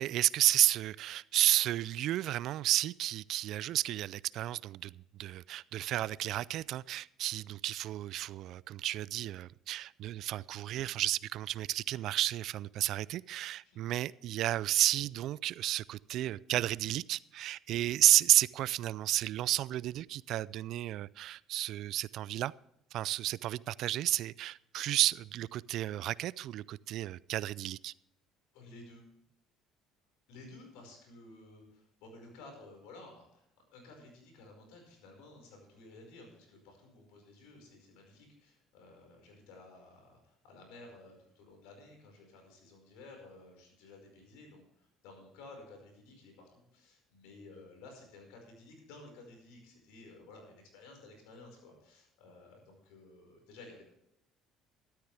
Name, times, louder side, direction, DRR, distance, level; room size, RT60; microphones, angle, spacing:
voice 1, 0.0-4.9 5.2-22.5 22.9-27.9, right 14 dB, 65° right, 0.3 m, -32 dB
voice 2, 28.5-29.0 30.3-33.4 33.7-53.8, left 2 dB, 80° left, 5.1 m, -54 dB
13.0 x 13.0 x 3.4 m
supercardioid pair, 75°, 0 cm